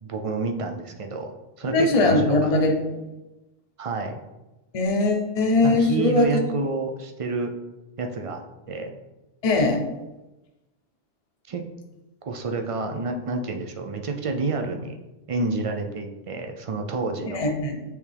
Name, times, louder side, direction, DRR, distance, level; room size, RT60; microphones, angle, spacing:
voice 1, 0.0-1.3 1.6-2.5 3.8-4.2 5.6-7.5 8.0-8.4 8.7-8.9 11.5-11.7 12.2-15.0 15.3-17.5, right 3 dB, 50° right, 4 dB, 0.4 m, -29 dB
voice 2, 1.7-2.8 4.7-6.4 9.4-9.8 17.3-17.8, left 2 dB, 35° left, 2 dB, 0.7 m, -21 dB
7.9 x 3.5 x 3.4 m, 1.0 s
omnidirectional pair, 1.2 m